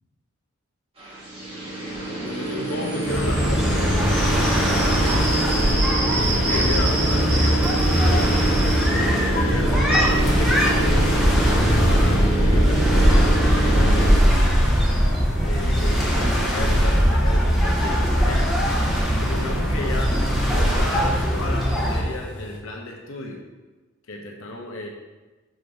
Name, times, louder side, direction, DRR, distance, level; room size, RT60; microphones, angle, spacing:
sound 1, 1.0-14.2, right 2 dB, 30° right, 2.1 m, -26 dB
voice 1, 2.2-3.9 6.4-8.3 9.0-14.7 15.4-18.6 18.9-23.4 24.1-24.9, left 2 dB, 85° left, 1 dB, 0.9 m, -33 dB
sound 2, 3.1-22.0, equal, ahead, 1.0 m, -20 dB
sound 3, 6.0-8.3 8.6-8.7 9.4-9.5 10.3-22.6, left 2 dB, 60° left, 1.2 m, -39 dB
6.5 x 4.0 x 5.0 m, 1.2 s
head